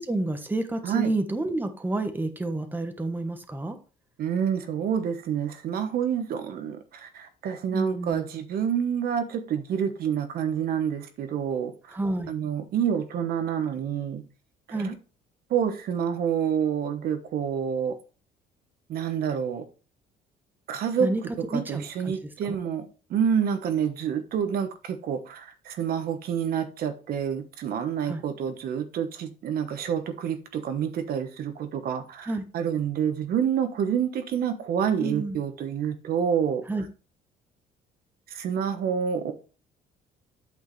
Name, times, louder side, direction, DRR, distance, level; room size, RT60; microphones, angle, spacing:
voice 1, 0.0-3.8 7.7-8.3 11.9-12.3 14.7-14.9 21.0-21.2 21.5-22.6 28.0-28.2 32.2-32.4 35.0-35.4 36.7-36.8, right 2 dB, 10° right, 1.1 m, -29 dB
voice 2, 4.2-12.0 12.3-14.2 14.7-14.9 15.5-17.9 18.9-19.6 20.7-21.1 21.5-36.6 38.3-39.3, right 8 dB, 65° right, 1.2 m, -28 dB
8.5 x 6.4 x 3.2 m
cardioid pair, 110°, 17 cm